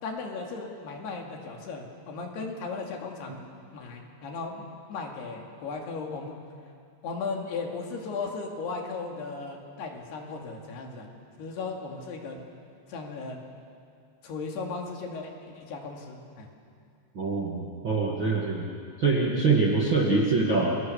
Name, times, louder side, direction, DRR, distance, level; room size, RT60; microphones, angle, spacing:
voice 1, 0.0-3.4 3.7-6.4 7.0-11.1 11.4-12.4 12.9-13.4 14.2-16.5, left 4 dB, 65° left, 1 dB, 4.3 m, -36 dB
voice 2, 17.1-18.7 19.0-20.8, right 3 dB, 40° right, -3 dB, 1.7 m, -24 dB
30.0 x 23.5 x 7.0 m, 2.4 s
omnidirectional pair, 5.4 m